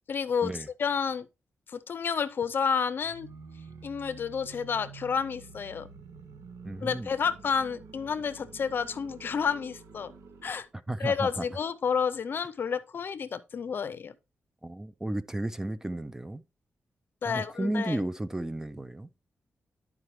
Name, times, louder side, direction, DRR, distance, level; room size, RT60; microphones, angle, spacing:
voice 1, 0.1-1.3 1.7-3.3 3.8-5.9 6.8-10.1 10.4-10.7 11.0-14.2 17.2-18.0, left 6 dB, 50° left, 0.6 m, -30 dB
sound 1, 3.0-10.7, right 4 dB, 85° right, 0.9 m, -49 dB
voice 2, 6.6-7.1 10.9-11.4 14.6-16.4 17.3-19.1, right 1 dB, 10° right, 0.4 m, -33 dB
11.5 x 4.8 x 3.1 m
wide cardioid pair, 150°, 5 cm